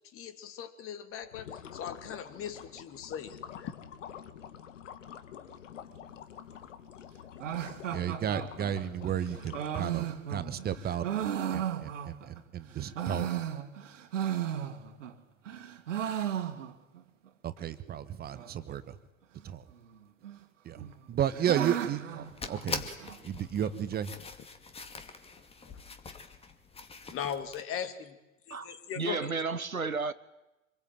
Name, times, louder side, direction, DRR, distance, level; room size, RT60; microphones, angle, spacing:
voice 1, 0.1-3.7 25.6-25.7 27.1-28.2 28.5-29.3, left 8 dB, 30° left, 2.8 m, -39 dB
sound 1, 1.2-10.2, left 9 dB, 60° left, 2.1 m, -47 dB
sound 2, 7.4-12.4 12.8-15.2 15.4-17.0 17.3-17.4 17.6-17.7 18.3-18.7 19.8-20.4 20.7-23.2, right 10 dB, 65° right, 2.5 m, -35 dB
voice 2, 7.9-13.3 17.4-18.8 19.4-19.6 20.6-22.8 23.2-24.1, right 9 dB, 25° right, 1.3 m, -33 dB
sound 3, 22.2-27.6, left 4 dB, 15° left, 2.4 m, -42 dB
voice 3, 28.5-30.1, right 4 dB, 90° right, 1.1 m, -33 dB
26.5 x 22.0 x 9.2 m
figure-of-eight pair, 95°, 41 cm